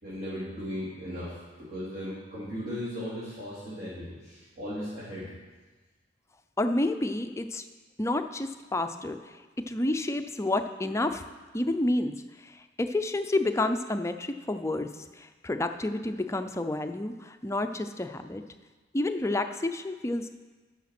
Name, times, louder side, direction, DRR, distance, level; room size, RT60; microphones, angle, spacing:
voice 1, 0.0-5.3, equal, 45° right, -11 dB, 3.4 m, -37 dB
voice 2, 6.6-7.6 8.0-9.2 9.7-11.2 11.5-12.1 12.8-14.9 15.2-18.4 18.9-20.3, left 2 dB, 15° left, 7 dB, 0.4 m, -29 dB
9.9 x 6.4 x 5.9 m, 1.3 s
head